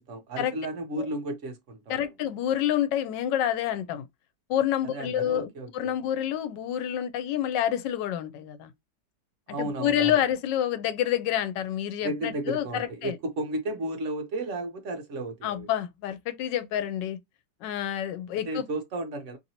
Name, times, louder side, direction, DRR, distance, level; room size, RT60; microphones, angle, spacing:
voice 1, 0.0-2.1 4.8-5.9 9.5-10.2 12.0-15.7 18.5-19.4, right 1 dB, 55° right, 0.9 m, -33 dB
voice 2, 1.9-4.0 4.5-8.7 9.6-13.2 15.4-17.2 17.6-18.7, left 10 dB, 85° left, 1.2 m, -28 dB
3.1 x 2.6 x 2.8 m
omnidirectional pair, 1.9 m